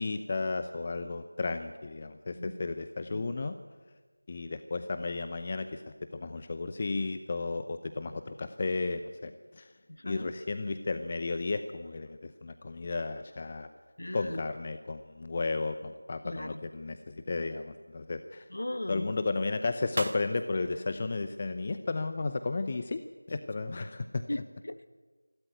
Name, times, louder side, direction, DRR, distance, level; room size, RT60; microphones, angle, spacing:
voice 1, 0.0-3.6 4.3-9.7 10.0-13.7 14.1-18.5 18.9-23.0 23.3-24.2, left 3 dB, 25° left, 10 dB, 0.7 m, -33 dB
voice 2, 9.9-10.3 14.0-14.4 16.2-16.6 18.5-19.1 24.3-24.9, left 1 dB, 60° left, 12 dB, 1.6 m, -37 dB
sound 1, 19.8-22.3, right 2 dB, 40° right, 1.4 m, -46 dB
25.5 x 13.0 x 9.3 m, 1.3 s
figure-of-eight pair, 175°, 0 cm